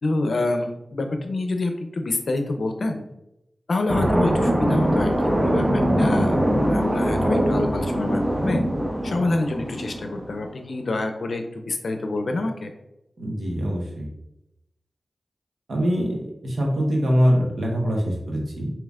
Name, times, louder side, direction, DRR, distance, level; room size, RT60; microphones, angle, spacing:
voice 1, 0.0-3.0 3.7-8.6 9.0-12.7, left 2 dB, 75° left, 5 dB, 0.5 m, -27 dB
sound 1, 3.9-10.3, equal, 20° right, 0.6 m, -22 dB
voice 2, 13.2-14.1 15.7-16.2 16.4-18.7, equal, 85° right, -2 dB, 1.0 m, -23 dB
5.3 x 2.9 x 2.4 m, 0.87 s
cardioid pair, 55°, 0 cm